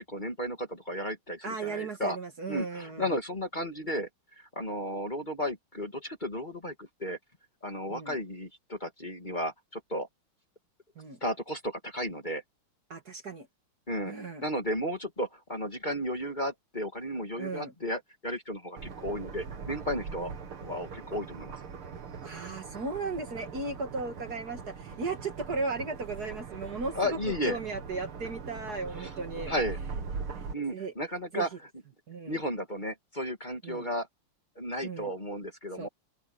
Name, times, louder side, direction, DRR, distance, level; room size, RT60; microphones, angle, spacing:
voice 1, 0.0-2.2 2.5-4.1 4.4-7.2 7.6-10.1 11.2-12.4 13.9-14.1 14.4-20.3 20.6-21.5 26.9-27.6 29.0-29.1 29.5-29.8 30.5-31.5 32.3-34.1 34.6-35.9, equal, 20° left, 2.5 m, -34 dB
voice 2, 1.4-3.2 7.9-8.2 11.0-11.2 12.9-13.5 14.1-14.4 17.4-17.7 20.2-20.3 22.2-27.2 27.5-29.5 30.4-30.9 31.3-31.5 32.1-32.4 33.6-33.9 34.8-35.1 35.8-35.9, right 3 dB, 45° right, 2.3 m, -36 dB
sound 1, 18.8-30.5, right 5 dB, 80° right, 2.9 m, -41 dB
omnidirectional pair, 2.4 m